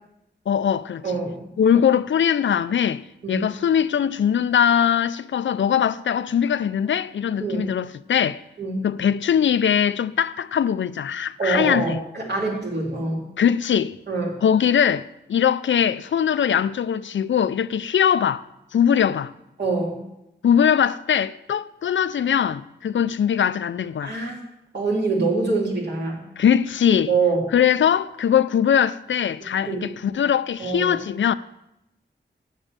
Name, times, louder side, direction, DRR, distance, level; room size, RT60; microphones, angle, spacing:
voice 1, 0.5-1.0 1.6-8.4 8.8-12.0 13.4-14.0 14.4-18.4 18.7-19.3 20.4-24.1 26.4-27.1 27.5-31.3, left 8 dB, 85° left, 0.4 m, -21 dB
voice 2, 1.0-1.4 3.2-3.5 7.4-7.7 8.6-8.8 11.4-13.2 14.1-14.4 19.6-20.0 24.0-24.3 24.7-26.2 27.1-27.5 29.6-29.8 30.6-31.0, right 3 dB, 65° right, 3.2 m, -25 dB
9.1 x 7.3 x 6.7 m
wide cardioid pair, 80°, 19 cm